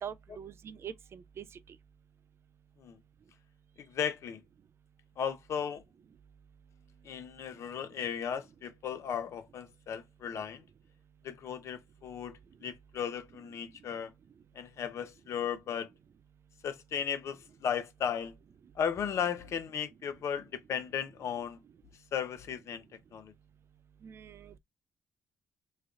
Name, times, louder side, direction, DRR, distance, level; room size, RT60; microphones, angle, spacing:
voice 1, 0.0-1.4 24.0-24.6, right 8 dB, 50° right, 0.4 m, -43 dB
voice 2, 3.9-4.4 5.2-5.8 7.0-10.6 11.2-14.1 14.5-15.9 16.6-18.3 18.8-21.6 22.1-22.8 23.1-23.3, left 8 dB, 60° left, 0.6 m, -35 dB
3.3 x 2.4 x 3.5 m
hypercardioid pair, 55°, 5 cm